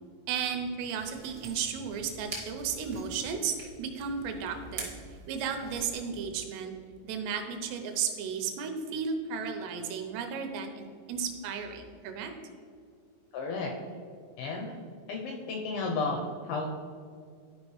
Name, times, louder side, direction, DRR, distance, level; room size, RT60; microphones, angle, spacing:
voice 1, 0.3-5.0 5.3-6.7 7.0-12.3, right 6 dB, 80° right, 5 dB, 2.8 m, -34 dB
sound 1, 0.9-6.0, right 3 dB, 60° right, 1.3 m, -45 dB
voice 2, 13.3-13.7 14.4-14.7 15.1-16.7, left 3 dB, 80° left, 1 dB, 2.1 m, -33 dB
12.0 x 5.2 x 3.2 m, 2.2 s
omnidirectional pair, 5.0 m